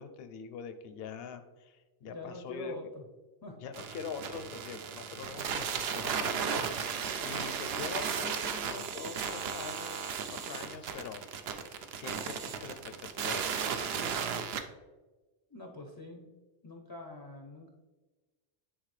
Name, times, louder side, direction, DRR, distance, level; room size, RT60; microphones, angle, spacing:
voice 1, 0.0-2.8 3.6-6.6 7.2-11.2 11.6-13.5 13.8-14.2, left 6 dB, 70° left, 9 dB, 0.8 m, -44 dB
voice 2, 2.0-3.0 3.4-3.6 15.5-16.3 16.6-17.7, left 1 dB, 30° left, 2 dB, 0.5 m, -45 dB
sound 1, 3.7-14.6, right 7 dB, 70° right, 0.8 m, -35 dB
9.1 x 3.8 x 3.2 m, 1.2 s
omnidirectional pair, 1.1 m